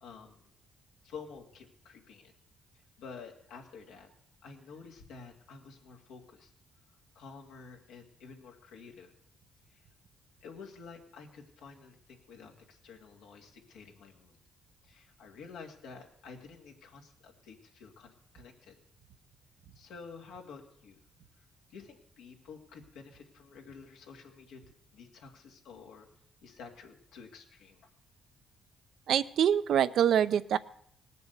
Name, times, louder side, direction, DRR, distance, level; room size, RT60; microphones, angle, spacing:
voice 1, 0.0-0.5 1.0-2.3 2.7-4.1 4.4-6.5 7.1-9.1 9.7-9.8 10.4-14.4 14.8-18.8 19.7-21.0 21.7-24.6 24.9-26.1 26.4-27.9, left 5 dB, 90° left, 2 dB, 2.3 m, -50 dB
voice 2, 29.1-30.6, right 9 dB, 70° right, 13 dB, 0.6 m, -25 dB
18.5 x 6.8 x 8.1 m, 0.71 s
cardioid pair, 90°, 0 cm